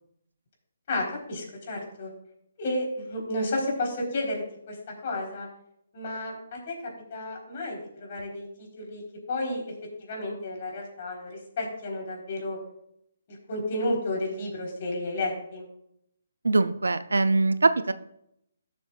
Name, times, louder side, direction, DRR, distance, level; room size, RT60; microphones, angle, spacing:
voice 1, 0.9-2.1 2.6-4.8 5.0-5.5 5.9-9.0 9.3-9.6 10.0-12.6 13.3-15.7, left 1 dB, 45° left, -1 dB, 4.0 m, -32 dB
voice 2, 16.4-17.9, right 3 dB, 80° right, 11 dB, 0.6 m, -22 dB
18.0 x 7.1 x 2.4 m, 0.75 s
figure-of-eight pair, 140°, 0 cm